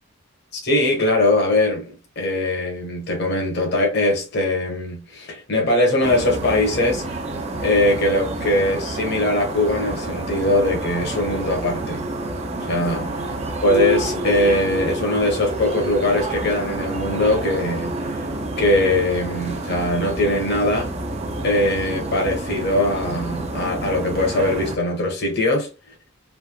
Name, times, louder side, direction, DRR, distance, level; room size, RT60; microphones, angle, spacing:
voice 1, 0.5-7.0 7.6-12.0 12.6-13.3 13.6-18.0 18.6-20.9 21.4-25.7, left 1 dB, 55° left, 1.1 m, -21 dB
sound 1, 6.0-24.8, right 2 dB, 30° right, 0.5 m, -29 dB
3.4 x 2.7 x 2.2 m
head